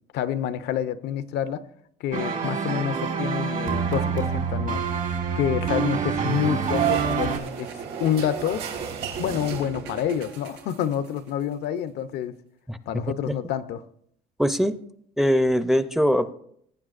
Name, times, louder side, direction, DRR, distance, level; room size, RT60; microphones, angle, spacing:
voice 1, 0.1-1.7 2.0-4.8 5.4-8.6 9.2-12.4 12.9-13.8, left 9 dB, 75° left, 0.6 m, -28 dB
sound 1, 2.1-7.4, right 6 dB, 50° right, 1.5 m, -26 dB
sound 2, 6.2-10.1, right 9 dB, 70° right, 2.5 m, -32 dB
sound 3, 6.6-11.5, right 7 dB, 85° right, 1.0 m, -41 dB
voice 2, 14.4-14.8 15.2-16.3, equal, ahead, 0.5 m, -21 dB
18.5 x 8.8 x 2.5 m
cardioid pair, 110°, 17 cm